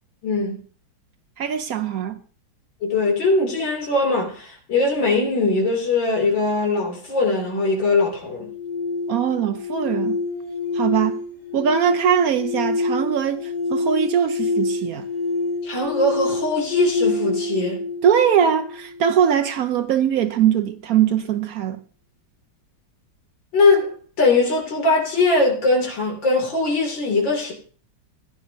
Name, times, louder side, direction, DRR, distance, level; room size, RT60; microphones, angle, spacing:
voice 1, 0.2-0.6 2.8-8.5 15.6-17.8 23.5-27.5, left 3 dB, 75° left, 3.5 m, -21 dB
voice 2, 1.4-2.2 9.1-10.2 10.7-11.2 11.5-15.1 18.0-21.8, right 8 dB, 65° right, 0.9 m, -21 dB
sound 1, 8.3-19.4, left 3 dB, 55° left, 3.8 m, -27 dB
15.5 x 10.5 x 2.7 m
omnidirectional pair, 2.0 m